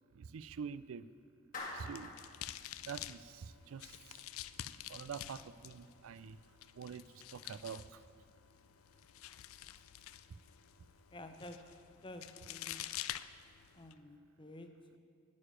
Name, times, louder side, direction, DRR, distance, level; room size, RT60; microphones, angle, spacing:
voice 1, 0.1-1.1 1.7-2.1 2.9-4.3 4.9-6.4 6.8-8.0 10.3-10.4, right 6 dB, 75° right, 16 dB, 0.4 m, -46 dB
Clapping, 1.5-2.2, left 2 dB, 40° left, 1.6 m, -44 dB
sound 1, 1.6-13.9, left 12 dB, 90° left, 0.4 m, -49 dB
voice 2, 11.1-11.6 12.0-12.8 13.7-15.0, left 1 dB, 25° left, 6 dB, 0.7 m, -51 dB
9.6 x 6.7 x 8.9 m, 2.3 s
head